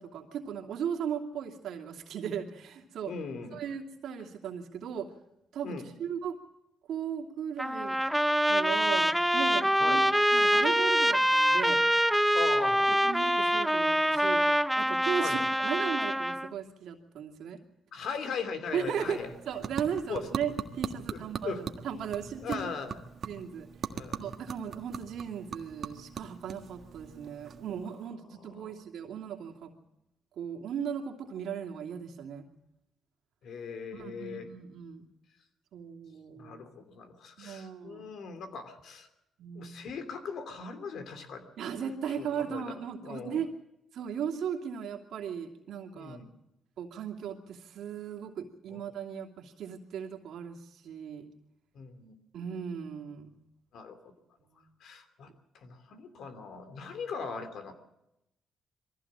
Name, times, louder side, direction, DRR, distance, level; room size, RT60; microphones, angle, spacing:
voice 1, 0.0-3.1 3.5-5.1 5.5-6.4 6.9-8.0 8.4-10.0 10.3-11.8 12.9-14.4 14.7-17.6 18.7-19.2 19.5-22.6 23.2-23.7 24.2-29.7 30.4-32.5 33.9-35.1 35.7-36.6 37.4-38.0 39.4-39.7 41.6-43.5 43.9-46.2 46.8-51.3 52.3-53.4 54.4-54.7, right 8 dB, 75° right, 2 dB, 2.7 m, -37 dB
voice 2, 3.1-3.6 5.6-5.9 9.8-10.1 12.3-12.9 15.2-15.5 17.9-19.3 20.1-20.3 21.1-21.6 22.4-23.0 23.9-24.2 28.3-28.8 33.4-34.5 36.4-39.1 39.5-41.5 42.2-43.4 45.9-46.3 48.7-48.8 51.7-52.1 53.7-54.1 54.8-55.3 55.5-57.7, left 5 dB, 70° left, 8 dB, 2.9 m, -39 dB
Trumpet, 7.6-16.5, equal, ahead, 0.6 m, -25 dB
sound 1, 18.7-28.1, right 6 dB, 55° right, 1.5 m, -41 dB
22.5 x 15.0 x 7.6 m, 0.87 s
cardioid pair, 90°, 0 cm